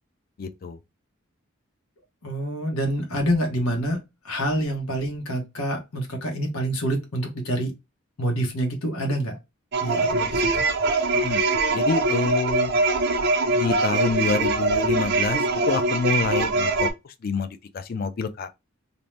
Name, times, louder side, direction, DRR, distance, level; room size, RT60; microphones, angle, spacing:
voice 1, 0.4-0.8 11.1-11.4 11.7-12.7 13.5-15.4 15.7-16.9 17.2-17.5 17.7-18.5, left 4 dB, 45° left, 0.3 m, -26 dB
voice 2, 2.2-4.0 4.2-7.7 8.2-9.4 9.8-10.6, right 1 dB, 85° left, 1.0 m, -27 dB
sound 1, 9.7-16.9, right 3 dB, 50° right, 0.4 m, -23 dB
2.7 x 2.0 x 3.2 m
head